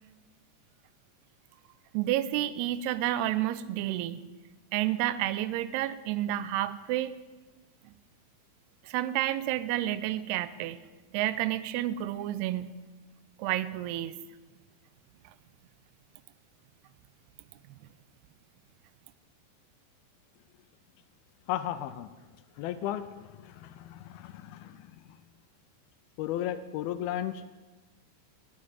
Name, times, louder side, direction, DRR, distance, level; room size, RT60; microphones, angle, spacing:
voice 1, 1.9-4.2 4.7-7.2 8.8-10.8 11.1-12.7 13.4-14.1, right 13 dB, 85° right, 15 dB, 2.6 m, -30 dB
voice 2, 21.5-22.1 22.6-23.1 23.4-24.9 26.2-27.5, left 12 dB, 80° left, 12 dB, 2.3 m, -34 dB
10.5 x 7.2 x 9.3 m, 1.2 s
omnidirectional pair, 4.5 m